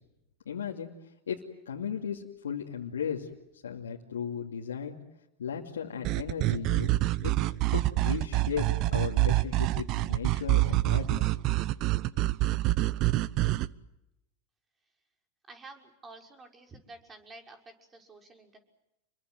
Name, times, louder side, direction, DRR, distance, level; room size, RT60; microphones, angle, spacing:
voice 1, 0.5-0.9 1.3-3.3 3.6-5.0 5.4-6.9 7.2-7.4 7.7-11.2, left 7 dB, 85° left, -2 dB, 2.6 m, -36 dB
sound 1, 6.0-13.7, right 17 dB, 50° right, 0.9 m, -26 dB
voice 2, 15.5-18.6, right 3 dB, 25° right, 4 dB, 6.1 m, -50 dB
29.5 x 23.0 x 7.9 m, 0.91 s
hypercardioid pair, 95°, 0 cm